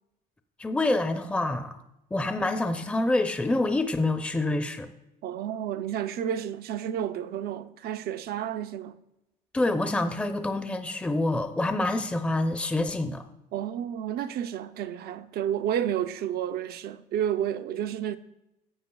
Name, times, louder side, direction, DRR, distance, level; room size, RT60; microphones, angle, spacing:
voice 1, 0.6-1.8 2.1-4.9 9.5-13.2, left 2 dB, 5° left, 0.5 m, -27 dB
voice 2, 5.2-9.0 13.5-18.2, right 10 dB, 65° right, 0.5 m, -31 dB
14.0 x 7.9 x 2.3 m
cardioid pair, 110°, 17 cm